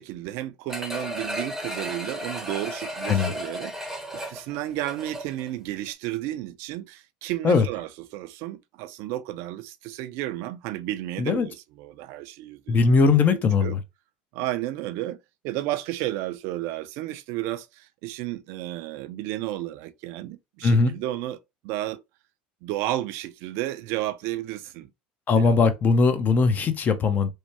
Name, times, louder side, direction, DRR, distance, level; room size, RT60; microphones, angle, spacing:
voice 1, 0.0-12.8 13.3-13.7 14.3-15.2 15.4-21.4 21.6-22.0 22.6-24.9 25.3-25.6, right 15 dB, 65° right, 0.4 m, -32 dB
sound 1, 0.7-5.5 5.9-6.0, equal, 5° right, 0.8 m, -34 dB
voice 2, 12.7-13.8 20.6-20.9 25.3-27.3, left 4 dB, 35° left, 0.7 m, -20 dB
3.1 x 2.1 x 2.8 m
hypercardioid pair, 90°, 5 cm